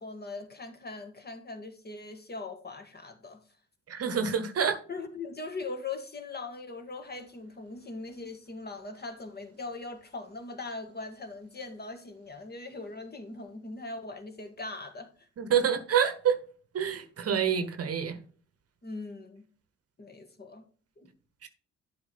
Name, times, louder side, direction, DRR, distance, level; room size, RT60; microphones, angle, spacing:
voice 1, 0.0-3.4 4.9-15.1 18.8-19.5 20.0-20.6 21.0-21.1, left 3 dB, 25° left, 1.7 m, -40 dB
voice 2, 3.9-4.8 15.4-16.4 16.7-18.2 21.4-21.5, right 7 dB, 40° right, 1.1 m, -27 dB
11.5 x 4.7 x 4.0 m
figure-of-eight pair, 40°, 36 cm